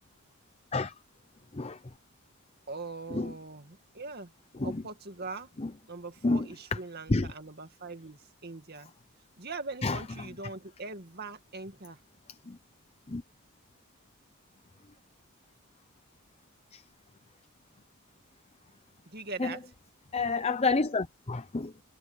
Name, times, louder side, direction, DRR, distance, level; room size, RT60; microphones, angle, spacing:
voice 1, 2.7-4.3 4.6-5.5 5.9-8.9 9.4-12.0 19.1-19.7, right 3 dB, 45° right, 2.3 m, -41 dB
voice 2, 6.2-6.8 7.1-7.3 9.8-10.3 12.3-12.6 13.1-13.2 16.7-16.8 19.4-19.6 20.1-21.8, left 3 dB, 30° left, 0.6 m, -30 dB
head